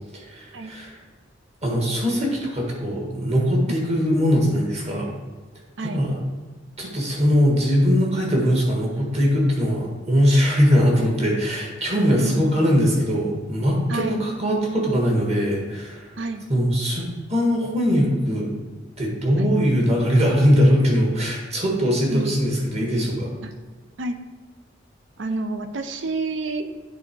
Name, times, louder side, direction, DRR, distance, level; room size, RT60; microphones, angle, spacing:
voice 1, 0.2-1.0 1.6-5.1 5.8-6.2 6.8-16.1 16.5-18.6 19.0-23.3, equal, 35° right, -1 dB, 1.6 m, -21 dB
voice 2, 12.2-12.5 13.9-14.2 16.2-16.4 19.4-19.5 22.1-22.3 23.4-23.5 24.0-24.2 25.2-26.6, right 3 dB, 80° right, 8 dB, 0.6 m, -28 dB
8.9 x 3.6 x 4.6 m, 1.4 s
head